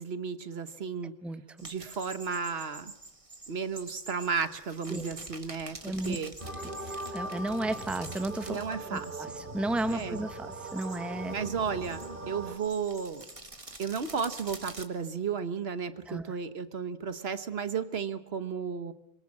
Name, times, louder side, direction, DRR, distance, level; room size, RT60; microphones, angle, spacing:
voice 1, 0.0-1.1 1.6-2.9 3.5-6.3 8.5-9.4 9.9-10.2 11.3-13.2 13.8-18.9, right 6 dB, 75° right, 11 dB, 1.4 m, -34 dB
sound 1, 1.6-14.9, right 2 dB, 30° right, 1.9 m, -48 dB
voice 2, 5.8-6.2 6.9-8.6 8.9-9.3 9.5-11.3 16.1-16.3, right 1 dB, ahead, 10 dB, 0.9 m, -33 dB
sound 2, 6.4-12.6, right 2 dB, 55° right, 2.9 m, -40 dB
26.0 x 23.0 x 7.4 m, 0.89 s
omnidirectional pair, 1.0 m